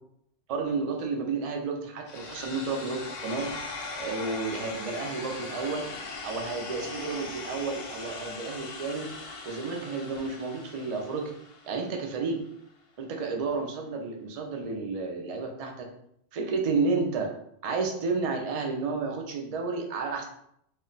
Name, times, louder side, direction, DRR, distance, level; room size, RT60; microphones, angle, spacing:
voice 1, 0.5-3.5 4.0-5.8 6.2-9.1 9.5-11.3 11.7-12.4 13.0-15.9 16.3-17.3 17.6-20.2, right 4 dB, 70° right, 2 dB, 0.3 m, -31 dB
sound 1, 2.1-12.1, left 3 dB, 65° left, 0.3 m, -40 dB
2.2 x 2.1 x 3.8 m, 0.73 s
omnidirectional pair, 1.2 m